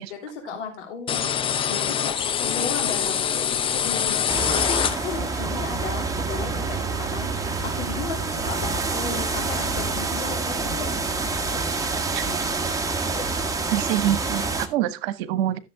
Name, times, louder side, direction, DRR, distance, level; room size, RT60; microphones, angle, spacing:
voice 1, 0.0-1.3 1.6-10.9 11.3-11.8 13.1-13.2, left 5 dB, 65° left, 3.1 m, -35 dB
sound 1, 1.1-5.4, left 8 dB, 15° left, 0.4 m, -25 dB
sound 2, 4.3-14.7, right 3 dB, 10° right, 1.5 m, -27 dB
Bowed string instrument, 5.0-9.8, right 11 dB, 35° right, 1.2 m, -38 dB
voice 2, 13.7-15.6, right 12 dB, 50° right, 1.3 m, -25 dB
14.0 x 7.1 x 3.5 m
figure-of-eight pair, 80°, 38 cm